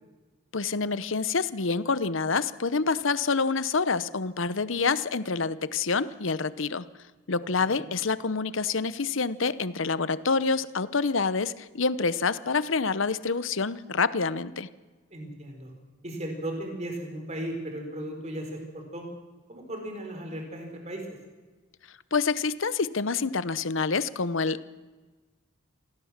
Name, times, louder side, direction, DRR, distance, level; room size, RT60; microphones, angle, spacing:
voice 1, 0.5-6.9 7.3-14.7 22.1-24.7, left 4 dB, 70° left, 15 dB, 0.9 m, -27 dB
voice 2, 15.1-15.7 16.0-19.1 19.5-21.1, right 1 dB, 35° right, 3 dB, 4.4 m, -36 dB
27.5 x 17.5 x 7.4 m, 1.3 s
head